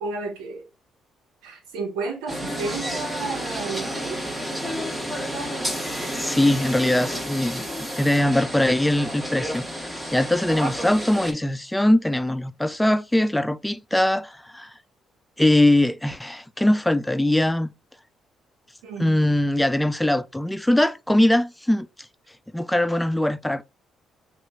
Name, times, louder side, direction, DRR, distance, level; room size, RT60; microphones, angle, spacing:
voice 1, 0.0-0.7 1.4-4.2 18.8-19.3, right 4 dB, 80° right, 0.7 m, -32 dB
sound 1, 2.3-11.3, equal, 10° right, 1.2 m, -31 dB
voice 2, 6.1-14.7 15.4-17.7 19.0-21.9 22.5-23.6, left 1 dB, 5° left, 0.4 m, -21 dB
2.9 x 2.4 x 4.2 m
hypercardioid pair, 50°, 0 cm